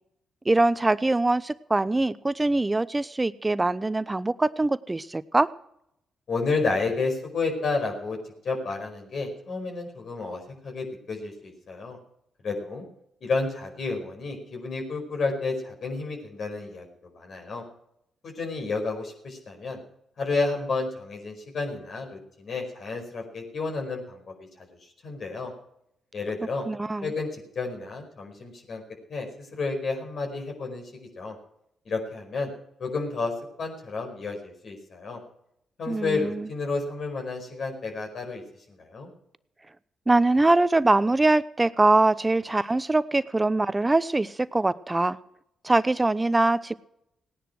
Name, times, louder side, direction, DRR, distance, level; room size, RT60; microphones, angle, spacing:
voice 1, 0.4-5.5 26.7-27.1 35.9-36.5 40.1-45.2 45.6-46.7, right 2 dB, 20° right, 16 dB, 0.9 m, -23 dB
voice 2, 6.3-8.2 8.4-12.0 12.4-12.8 13.2-16.9 17.1-17.6 18.2-19.8 20.2-24.5 24.8-25.5 26.1-26.6 27.0-28.8 29.1-30.9 31.1-31.3 31.8-32.5 32.8-33.3 33.6-35.2 35.8-38.4 38.8-39.1, left 3 dB, 60° left, 2 dB, 5.1 m, -31 dB
18.0 x 10.0 x 6.3 m, 0.77 s
hypercardioid pair, 50°, 0 cm